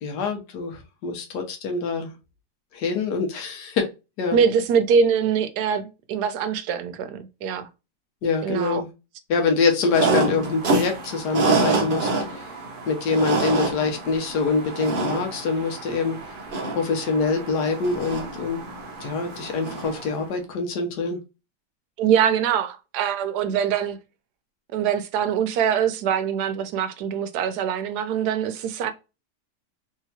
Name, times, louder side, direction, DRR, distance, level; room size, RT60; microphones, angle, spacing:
voice 1, 0.0-2.1 2.7-3.9 4.2-4.4 8.2-8.9 9.3-12.5 12.9-16.2 16.7-18.6 19.0-21.2, left 4 dB, 75° left, 1.3 m, -25 dB
voice 2, 4.3-7.7 8.4-8.8 22.0-24.0 24.7-28.9, right 7 dB, 75° right, 1.1 m, -23 dB
sound 1, 9.9-20.2, right 3 dB, 50° right, 0.6 m, -27 dB
3.3 x 2.8 x 2.7 m
omnidirectional pair, 1.8 m